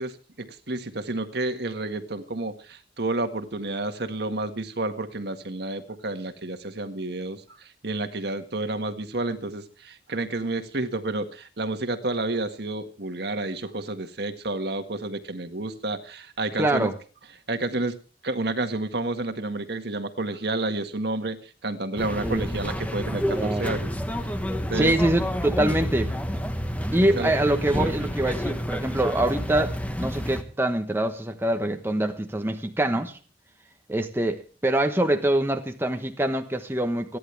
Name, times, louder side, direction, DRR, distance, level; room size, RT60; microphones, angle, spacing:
voice 1, 0.0-7.4 7.8-16.9 17.5-18.0 18.2-23.9 24.7-25.0 27.2-27.3, right 2 dB, 60° right, 1.7 m, -30 dB
voice 2, 16.6-16.9 22.2-22.5 23.4-23.8 24.7-26.2 26.9-33.2 33.9-37.2, right 1 dB, 15° right, 1.1 m, -24 dB
sound 1, 22.0-30.4, equal, 10° left, 1.4 m, -29 dB
28.5 x 10.5 x 3.4 m
head